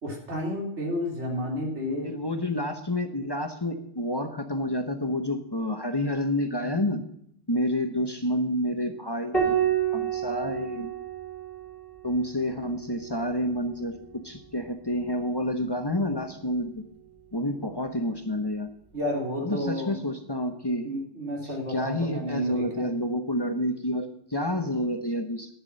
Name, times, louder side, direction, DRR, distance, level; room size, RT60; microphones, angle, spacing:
voice 1, 0.0-2.1 18.9-19.9 20.8-22.9, left 1 dB, 90° right, -1 dB, 3.5 m, -31 dB
voice 2, 2.0-7.0 7.5-9.6 9.9-10.9 12.0-14.0 14.2-16.8 17.3-18.7 19.4-20.9 21.4-25.5, left 1 dB, 25° left, 6 dB, 0.9 m, -29 dB
Piano, 9.3-14.2 15.8-16.6, right 9 dB, ahead, 2.3 m, -31 dB
11.0 x 6.1 x 8.6 m, 0.69 s
omnidirectional pair, 1.1 m